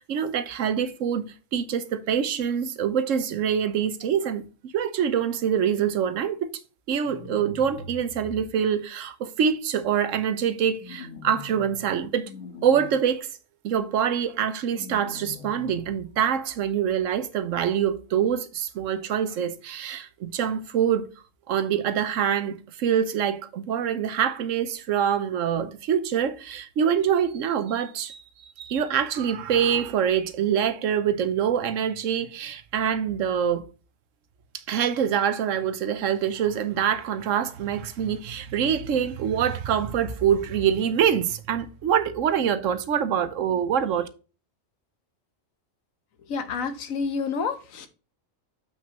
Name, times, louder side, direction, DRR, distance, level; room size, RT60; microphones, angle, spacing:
voice 1, 0.0-6.5 6.9-12.3 12.6-13.3 13.6-21.1 21.5-33.7 34.5-44.1, right 8 dB, 75° right, 1.1 m, -25 dB
sound 1, 7.0-8.5 10.8-11.9 12.2-12.9 14.7-15.9, left 4 dB, 65° left, 1.4 m, -42 dB
voice 2, 46.3-47.9, left 5 dB, 85° left, 1.3 m, -29 dB
7.3 x 6.1 x 2.9 m
omnidirectional pair, 1.4 m